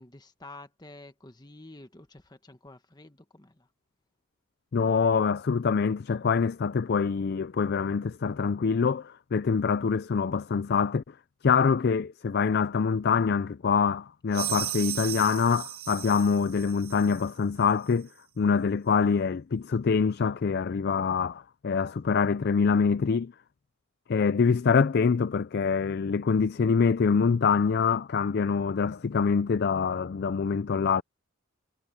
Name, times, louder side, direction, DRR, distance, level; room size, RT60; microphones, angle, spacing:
voice 1, 0.0-3.7, left 2 dB, 20° left, 1.3 m, -49 dB
voice 2, 4.7-11.0 11.4-18.1 18.4-23.3 24.1-31.0, left 5 dB, 50° left, 0.4 m, -25 dB
sound 1, 14.3-17.3, right 13 dB, 90° right, 1.4 m, -36 dB
head